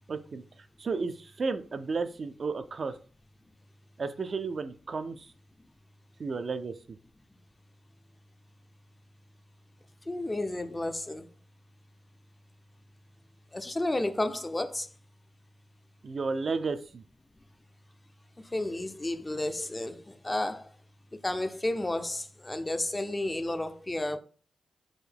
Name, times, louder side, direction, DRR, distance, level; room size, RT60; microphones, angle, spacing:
voice 1, 0.1-3.0 4.0-5.3 6.2-7.0 16.0-17.0, right 4 dB, 50° right, 0.3 m, -33 dB
voice 2, 10.1-11.3 13.5-14.9 18.5-20.6 21.2-24.2, left 1 dB, 20° left, 0.4 m, -32 dB
3.7 x 2.1 x 3.4 m
supercardioid pair, 50°, 0 cm